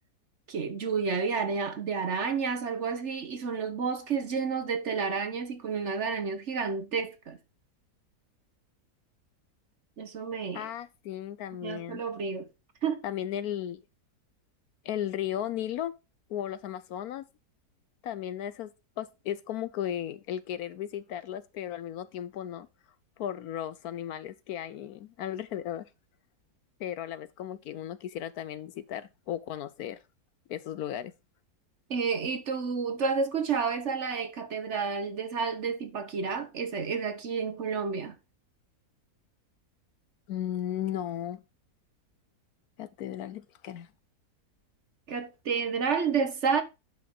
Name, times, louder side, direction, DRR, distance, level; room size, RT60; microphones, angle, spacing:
voice 1, 0.5-7.4 10.0-10.7 11.6-12.5 12.8-13.0 31.9-38.1 45.1-46.6, right 5 dB, 50° right, 1.1 m, -30 dB
voice 2, 10.5-12.0 13.0-13.8 14.8-15.9 16.3-17.3 18.0-22.7 23.2-25.9 26.8-30.0 30.5-31.1 40.3-41.4 42.8-43.9, left 11 dB, 70° left, 1.0 m, -35 dB
10.5 x 5.8 x 3.8 m
omnidirectional pair, 1.8 m